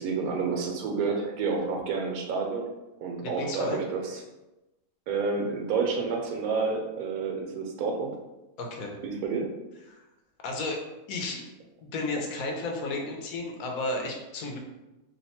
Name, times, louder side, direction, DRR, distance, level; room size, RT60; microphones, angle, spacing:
voice 1, 0.0-2.7 3.0-4.0 5.1-8.2 9.0-9.5, right 4 dB, 80° right, 1 dB, 1.0 m, -29 dB
voice 2, 3.2-3.8 8.6-9.0 9.9-10.0 10.4-10.8 11.1-11.5 11.8-14.6, left 2 dB, 70° left, 1 dB, 1.0 m, -33 dB
2.8 x 2.1 x 4.1 m, 1.0 s
omnidirectional pair, 1.6 m